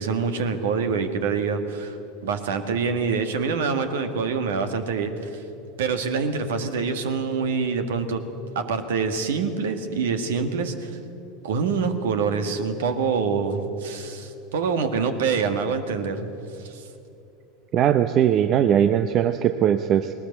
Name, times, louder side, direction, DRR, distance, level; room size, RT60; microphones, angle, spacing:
voice 1, 0.0-2.0 2.2-5.4 5.8-8.2 8.5-11.0 11.4-16.3 16.6-16.9, right 5 dB, 65° right, 8 dB, 1.8 m, -25 dB
voice 2, 17.7-20.1, right 9 dB, 40° right, 10 dB, 0.7 m, -20 dB
20.5 x 19.0 x 8.0 m, 2.8 s
figure-of-eight pair, 80°, 0 cm